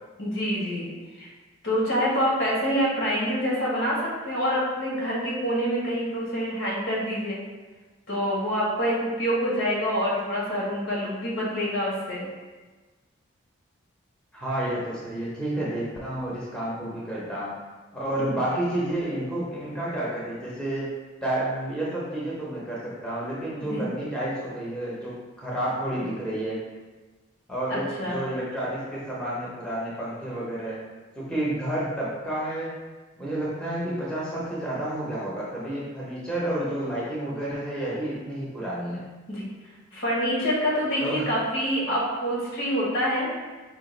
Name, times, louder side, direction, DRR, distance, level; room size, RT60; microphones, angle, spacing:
voice 1, 0.2-0.9 1.2-1.3 1.6-7.4 8.1-12.2 23.6-23.9 27.7-28.2 39.3-39.4 39.9-43.3, equal, 75° left, -5 dB, 1.4 m, -26 dB
voice 2, 14.3-17.6 17.9-21.0 21.2-26.6 27.5-30.8 31.2-32.8 33.2-39.1 41.0-41.3, right 1 dB, 5° left, -7 dB, 0.8 m, -30 dB
5.0 x 2.5 x 3.8 m, 1.3 s
head